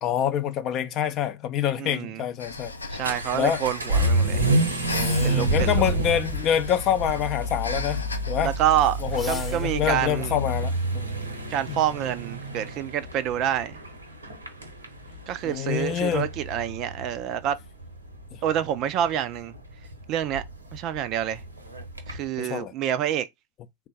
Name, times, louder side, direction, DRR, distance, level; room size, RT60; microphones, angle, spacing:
voice 1, 0.0-3.0 3.3-3.6 4.9-8.5 9.0-11.1 11.7-11.8 15.4-16.3 18.3-18.4 22.4-22.7, left 9 dB, 35° left, 0.5 m, -26 dB
voice 2, 1.8-2.2 3.0-4.4 5.2-5.7 8.4-9.0 9.3-10.3 11.5-13.8 15.3-17.6 18.4-19.5 20.1-20.4 20.7-21.4 22.1-23.3, right 10 dB, 40° right, 0.4 m, -27 dB
Breathing, 2.4-10.1, left 3 dB, 80° left, 0.5 m, -38 dB
Vehicle / Accelerating revving vroom, 2.5-22.3, right 1 dB, 75° right, 0.8 m, -29 dB
sound 1, 4.2-5.6 9.1-9.9, left 2 dB, 5° left, 0.8 m, -40 dB
3.6 x 2.2 x 4.0 m
figure-of-eight pair, 90°, 0 cm